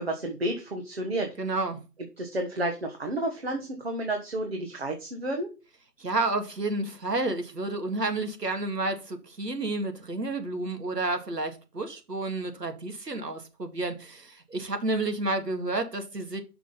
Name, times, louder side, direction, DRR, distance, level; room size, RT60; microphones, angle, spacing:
voice 1, 0.0-1.3 2.2-5.5, right 1 dB, 40° right, 1.2 m, -31 dB
voice 2, 1.4-1.8 6.0-16.4, right 2 dB, 80° right, 2.1 m, -30 dB
5.9 x 5.7 x 5.6 m
figure-of-eight pair, 170°, 48 cm